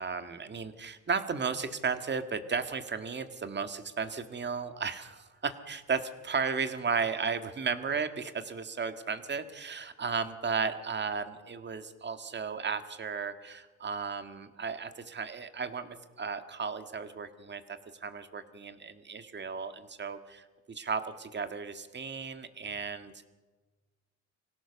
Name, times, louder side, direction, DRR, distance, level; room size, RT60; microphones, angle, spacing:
voice 1, 0.0-17.6 18.0-23.1, right 5 dB, 35° right, 9 dB, 1.9 m, -34 dB
25.0 x 17.0 x 7.0 m, 1.3 s
cardioid pair, 90°, 30 cm